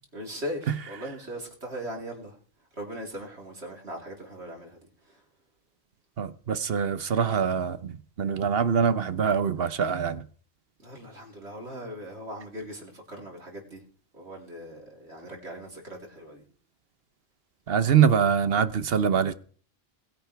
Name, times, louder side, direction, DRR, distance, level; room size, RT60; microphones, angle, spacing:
voice 1, 0.1-2.3 2.8-4.8 10.8-13.8 14.1-16.4, equal, 85° right, 4.1 m, -39 dB
voice 2, 6.2-10.2 17.7-19.3, right 7 dB, 65° right, 1.0 m, -24 dB
21.0 x 10.5 x 3.4 m
omnidirectional pair, 1.1 m